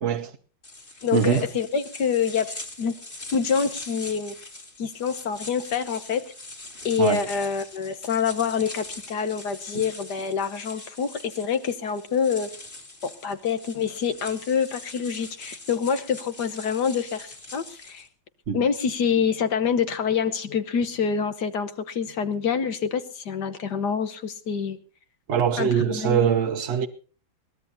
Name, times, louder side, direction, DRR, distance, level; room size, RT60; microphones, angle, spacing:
voice 1, 0.0-0.3 1.1-1.5 7.0-7.2 18.5-18.6 25.3-26.9, right 7 dB, 45° right, 1.1 m, -22 dB
sound 1, 0.6-18.1, left 2 dB, 25° left, 2.7 m, -42 dB
voice 2, 1.0-2.5 2.8-2.9 3.3-4.3 4.8-6.2 6.8-12.5 13.0-18.1 18.5-24.8 25.6-26.3, left 6 dB, 60° left, 1.6 m, -26 dB
22.0 x 18.0 x 2.7 m
omnidirectional pair, 2.3 m